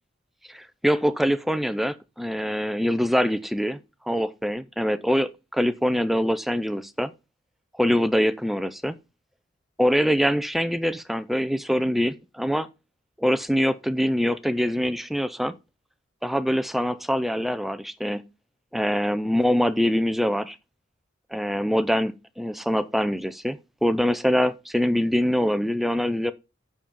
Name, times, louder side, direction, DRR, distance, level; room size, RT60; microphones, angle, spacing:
voice 1, 0.5-3.8 4.1-7.1 7.8-8.9 9.8-12.7 13.2-15.5 16.2-18.2 18.7-20.6 21.3-26.3, equal, ahead, 0.5 m, -24 dB
7.6 x 5.4 x 7.1 m
head